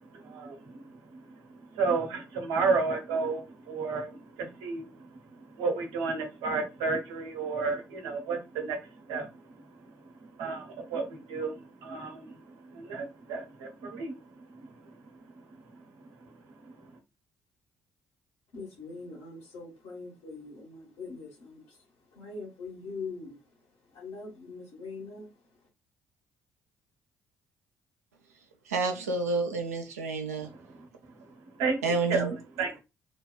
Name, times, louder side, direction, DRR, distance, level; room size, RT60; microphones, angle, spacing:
voice 1, 0.2-0.6 1.7-4.1 4.4-4.8 5.6-8.8 9.1-9.3 10.4-11.5 11.8-12.3 12.7-14.1 31.6-31.8 32.1-32.8, right 4 dB, 70° right, 0.9 m, -31 dB
voice 2, 18.5-21.8 22.1-23.4 23.9-25.3, left 4 dB, 60° left, 1.2 m, -42 dB
voice 3, 28.7-30.5 31.8-32.3, right 3 dB, 85° right, 0.5 m, -29 dB
2.7 x 2.2 x 2.2 m
figure-of-eight pair, 45°, 8 cm